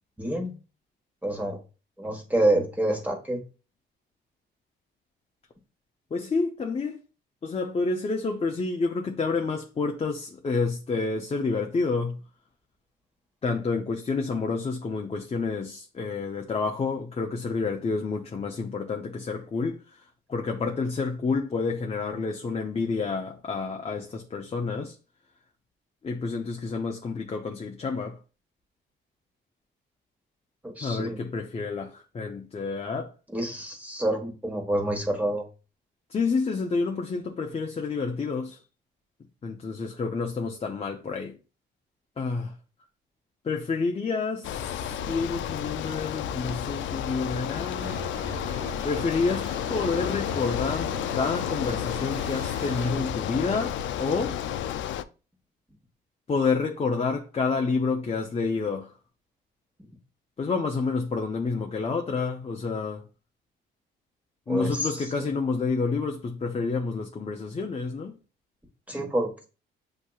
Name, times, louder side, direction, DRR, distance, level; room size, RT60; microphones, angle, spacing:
voice 1, 0.2-0.6 1.2-1.6 2.0-3.4 30.6-31.2 33.3-35.4 59.8-59.9 64.5-65.3 68.9-69.5, right 1 dB, 5° right, 1.4 m, -28 dB
voice 2, 6.1-7.0 7.4-12.2 13.4-24.9 26.0-28.2 30.8-33.1 36.1-38.6 39.4-41.4 42.2-42.5 43.4-48.1 48.8-54.4 56.3-58.9 60.4-63.0 64.5-68.1, left 4 dB, 30° left, 0.6 m, -29 dB
Bicycle, 44.4-55.0, left 10 dB, 70° left, 0.4 m, -31 dB
sound 1, 47.8-53.0, equal, 70° right, 1.3 m, -40 dB
7.8 x 2.8 x 2.4 m
cardioid pair, 90°, 20 cm